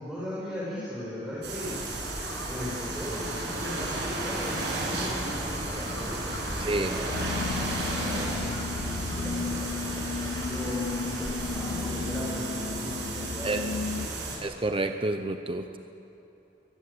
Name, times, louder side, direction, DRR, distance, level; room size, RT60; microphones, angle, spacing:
voice 1, 0.0-1.7 2.5-7.2 8.0-14.3, left 1 dB, ahead, -9 dB, 6.3 m, -38 dB
sound 1, 1.4-14.4, right 2 dB, 75° right, 6.9 m, -34 dB
sound 2, 1.6-11.7, left 1 dB, 20° left, 1.4 m, -42 dB
voice 2, 6.6-7.0 13.4-13.6 14.4-15.8, right 2 dB, 30° right, 7 dB, 0.8 m, -29 dB
sound 3, 7.1-14.1, left 4 dB, 85° left, 0.5 m, -34 dB
22.5 x 22.0 x 8.5 m, 2.8 s
head